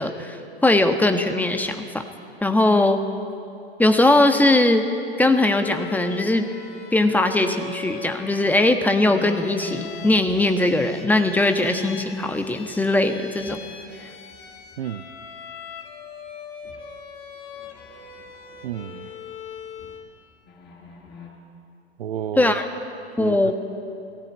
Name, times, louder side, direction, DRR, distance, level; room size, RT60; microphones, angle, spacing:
voice 1, 0.0-2.0 2.4-3.0 3.8-4.9 5.2-6.5 6.9-13.6 22.4-22.7 23.2-23.5, left 2 dB, 5° left, 6 dB, 1.4 m, -20 dB
Bowed string instrument, 5.3-20.1, left 7 dB, 50° left, 2.6 m, -41 dB
sound 1, 9.0-13.9 14.2-15.8 16.1-16.3 16.6-20.1 20.5-21.3, left 3 dB, 30° left, 5.1 m, -45 dB
voice 2, 14.8-15.1 18.6-19.1 22.0-22.6 23.2-23.5, right 10 dB, 65° right, 14 dB, 0.7 m, -31 dB
18.5 x 16.5 x 9.4 m, 2.6 s
figure-of-eight pair, 90°, 33 cm